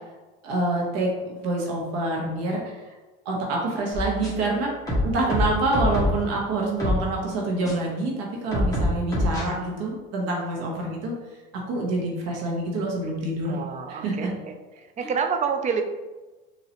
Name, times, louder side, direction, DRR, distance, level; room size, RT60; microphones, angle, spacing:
voice 1, 0.4-1.1 1.4-2.8 3.2-4.7 5.0-11.1 11.5-13.6 13.9-14.3 15.0-15.1, right 2 dB, 60° right, -1 dB, 1.2 m, -26 dB
sound 1, 3.9-4.5 4.9-6.3 6.8-7.0 7.6-7.7 8.5-9.4, left 1 dB, 10° left, 1.4 m, -25 dB
voice 2, 13.4-15.8, right 6 dB, 25° right, 5 dB, 0.4 m, -28 dB
4.0 x 2.9 x 2.8 m, 1.2 s
supercardioid pair, 105°, 30 cm